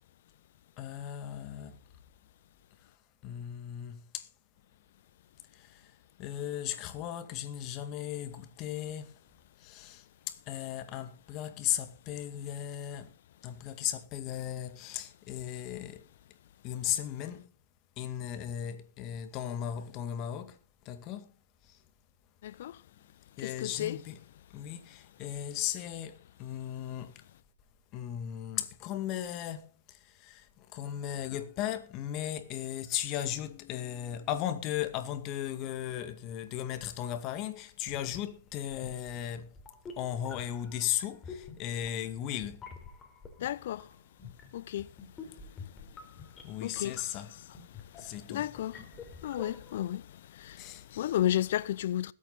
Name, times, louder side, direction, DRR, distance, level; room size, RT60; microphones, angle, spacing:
voice 1, 0.8-1.7 3.2-4.2 6.2-9.1 9.6-10.0 10.5-13.1 13.4-16.0 16.6-17.5 18.0-20.5 20.9-21.2 23.4-24.2 24.5-26.1 26.4-27.1 27.9-29.7 30.2-30.4 30.7-39.5 40.0-42.6 46.4-47.3 48.0-48.4 50.6-50.8, left 11 dB, 35° left, 2.1 m, -36 dB
voice 2, 22.4-22.8 23.4-24.0 43.4-44.0 44.5-47.4 47.7-52.1, left 12 dB, 55° left, 0.6 m, -35 dB
Keyboard (musical), 33.1-35.8, left 18 dB, 20° right, 4.4 m, -59 dB
sound 1, 37.8-49.9, left 5 dB, 15° left, 3.7 m, -49 dB
20.5 x 8.5 x 4.0 m
hypercardioid pair, 120°, 0 cm